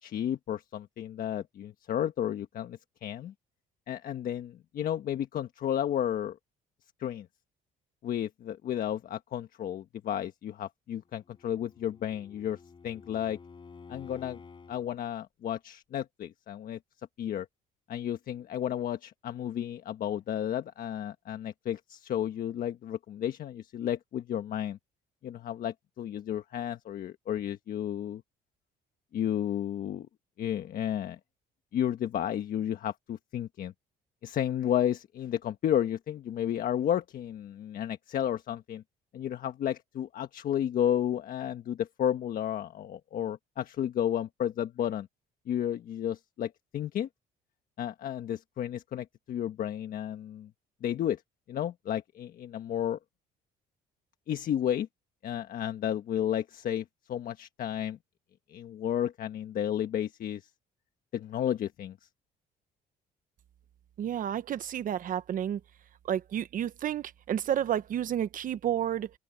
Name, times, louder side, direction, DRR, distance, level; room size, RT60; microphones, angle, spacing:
voice 1, 0.0-3.3 3.9-6.4 7.0-7.3 8.0-12.6 12.8-13.4 13.9-14.4 14.7-16.8 17.2-17.5 17.9-24.8 25.2-28.2 29.1-30.1 30.4-31.2 31.7-33.7 34.2-38.8 39.1-45.1 45.5-47.1 47.8-50.5 50.8-51.2 51.5-53.0 54.3-54.9 55.2-58.0 58.5-60.5 61.1-62.0, left 10 dB, 55° left, 1.3 m, -32 dB
Bowed string instrument, 11.2-14.9, left 5 dB, 30° left, 4.9 m, -51 dB
voice 2, 64.0-65.6 66.0-69.1, right 10 dB, 55° right, 1.2 m, -31 dB
open air
cardioid pair, 110°, 17 cm